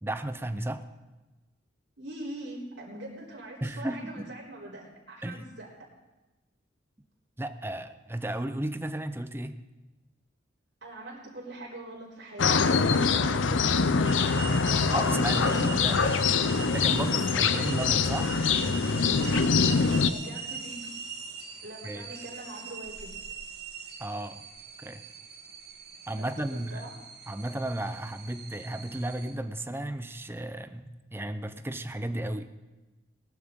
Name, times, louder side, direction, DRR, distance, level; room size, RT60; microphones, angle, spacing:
voice 1, 0.0-0.8 3.6-4.3 5.2-5.4 7.4-9.6 14.9-16.2 16.7-18.3 21.8-22.1 24.0-24.4 24.8-25.0 26.1-26.9 27.3-32.6, right 1 dB, 10° right, 10 dB, 0.6 m, -34 dB
voice 2, 2.0-5.7 10.8-14.2 17.3-17.7 19.2-19.5 20.0-20.9 21.6-23.1 26.2-26.3 26.5-26.9, right 1 dB, 80° right, -6 dB, 3.8 m, -43 dB
sound 1, 12.4-20.1, left 5 dB, 90° left, 0.6 m, -24 dB
sound 2, 14.0-29.4, right 5 dB, 60° right, 1.7 m, -41 dB
19.0 x 12.5 x 3.7 m, 1.1 s
head